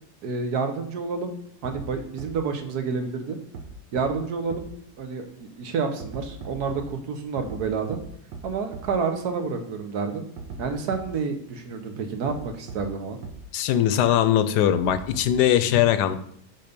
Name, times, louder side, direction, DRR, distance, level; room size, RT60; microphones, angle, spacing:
voice 1, 0.2-1.3 1.6-3.4 3.9-4.7 5.0-8.0 8.4-10.3 10.6-13.2, right 5 dB, 70° right, 6 dB, 1.4 m, -29 dB
sound 1, 1.6-1.9 2.2-2.3 3.5-3.6 4.0-4.1 4.5-4.6 6.0-6.8 7.4-7.6 7.9-8.0 8.3-8.4 8.7-8.8 10.4-10.6 10.9-11.0 12.3-12.4 12.7-12.8 13.2-13.3 14.7-15.4, right 5 dB, 85° right, 1.7 m, -37 dB
voice 2, 13.5-16.2, left 10 dB, 80° left, 11 dB, 1.1 m, -20 dB
6.1 x 5.6 x 5.2 m, 0.65 s
omnidirectional pair, 1.8 m